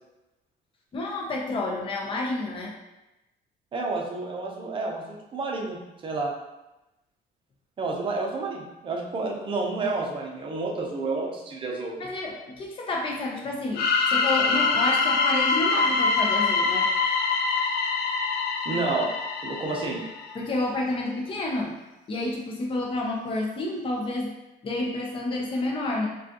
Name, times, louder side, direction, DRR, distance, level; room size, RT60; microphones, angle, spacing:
voice 1, 0.9-2.7 12.0-16.9 20.3-21.7 22.1-24.3 24.6-26.1, left 2 dB, 30° left, -1 dB, 0.7 m, -29 dB
voice 2, 3.7-6.3 7.8-12.0 18.6-19.1 19.4-20.0, right 3 dB, 30° right, 0 dB, 0.6 m, -30 dB
sound 1, 13.7-20.4, left 4 dB, 65° left, 0.5 m, -24 dB
4.8 x 2.4 x 2.9 m, 0.98 s
cardioid pair, 145°, 18 cm